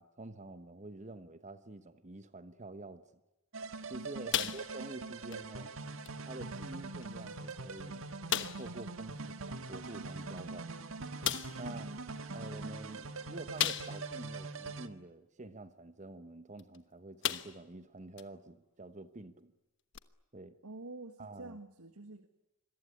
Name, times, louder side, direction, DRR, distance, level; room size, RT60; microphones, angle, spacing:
voice 1, 0.0-3.0 3.9-5.7 6.3-8.0 8.4-10.8 11.6-11.9 12.3-19.5 20.3-20.5 21.2-21.6, right 2 dB, 35° right, 12 dB, 1.1 m, -48 dB
sound 1, 3.5-14.9, right 3 dB, 65° right, 1.6 m, -43 dB
sound 2, 4.3-5.0 5.3-5.5 6.0-6.2 7.0-7.1 7.5-7.6 8.3-8.7 10.4-10.5 11.2-11.6 13.6-14.2 14.7-14.8 16.6-16.8 17.2-17.7 18.2-18.3 19.9-20.0, left 10 dB, 55° left, 1.2 m, -34 dB
voice 2, 11.7-12.0 20.6-22.3, right 2 dB, 85° right, 10 dB, 1.7 m, -48 dB
27.0 x 22.5 x 9.8 m, 0.97 s
head